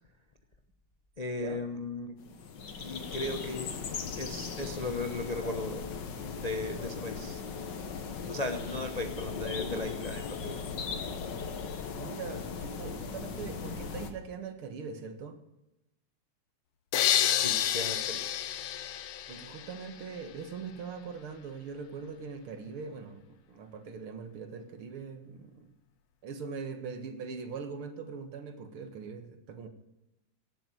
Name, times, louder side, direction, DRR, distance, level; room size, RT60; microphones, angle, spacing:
voice 1, 1.2-2.1 2.8-3.7 4.2-5.8 6.3-7.4 8.3-10.6 17.4-18.3, left 2 dB, 40° left, 7 dB, 0.5 m, -36 dB
sound 1, 2.2-14.1, left 5 dB, 60° left, 2.0 m, -38 dB
voice 2, 11.9-15.4 19.3-25.7 26.2-29.7, right 5 dB, 80° right, 8 dB, 2.5 m, -42 dB
sound 2, 16.9-19.9, left 11 dB, 80° left, 1.7 m, -29 dB
17.5 x 7.9 x 7.6 m, 0.94 s
omnidirectional pair, 2.3 m